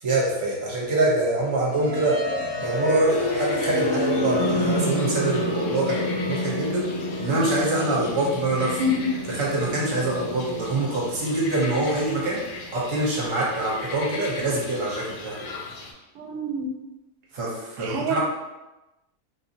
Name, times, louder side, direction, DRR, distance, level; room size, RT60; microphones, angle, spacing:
voice 1, 0.0-6.9 7.2-8.8 9.3-12.4 12.7-15.3 17.3-17.5 17.8-18.2, right 2 dB, 60° right, -5 dB, 1.2 m, -25 dB
sound 1, 1.7-13.6, left 1 dB, 60° left, 0.9 m, -29 dB
sound 2, 3.1-15.9, left 3 dB, 75° left, 0.6 m, -40 dB
voice 2, 8.8-9.1 16.2-16.7 17.8-18.2, left 1 dB, 80° right, 2 dB, 1.1 m, -26 dB
3.7 x 2.7 x 2.6 m, 1.0 s
omnidirectional pair, 1.7 m